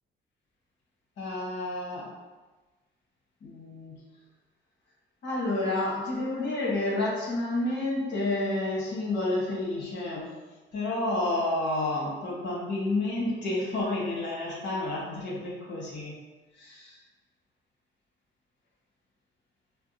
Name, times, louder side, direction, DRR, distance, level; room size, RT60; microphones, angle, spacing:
voice 1, 1.2-2.1 3.4-4.0 5.2-10.4 10.7-16.2 16.5-17.0, left 2 dB, 65° left, -6 dB, 1.3 m, -30 dB
4.4 x 2.1 x 2.7 m, 1.2 s
cardioid pair, 90°, 20 cm